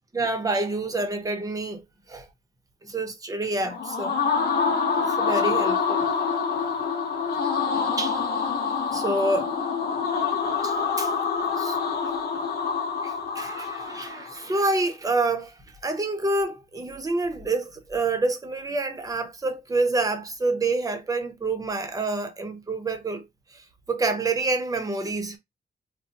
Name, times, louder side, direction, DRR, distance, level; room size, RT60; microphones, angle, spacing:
voice 1, 0.1-1.8 2.1-2.3 2.8-4.1 5.2-6.0 8.0-8.2 8.9-9.5 10.6-11.1 11.6-11.8 13.0-23.2 23.5-23.6 23.9-25.4, right 2 dB, 20° right, 0.7 m, -27 dB
sound 1, 3.6-14.5, left 5 dB, 80° left, 0.9 m, -26 dB
3.7 x 2.0 x 2.7 m
wide cardioid pair, 140°, 16 cm